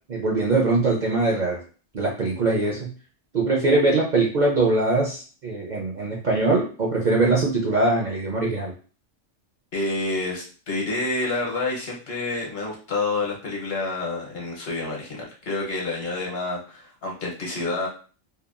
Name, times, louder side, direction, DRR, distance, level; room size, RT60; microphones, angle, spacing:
voice 1, 0.1-1.6 1.9-2.9 3.3-8.7, right 2 dB, 50° right, -3 dB, 0.6 m, -22 dB
voice 2, 9.7-17.9, left 2 dB, 55° left, -2 dB, 1.0 m, -28 dB
2.8 x 2.3 x 2.4 m, 0.38 s
omnidirectional pair, 1.3 m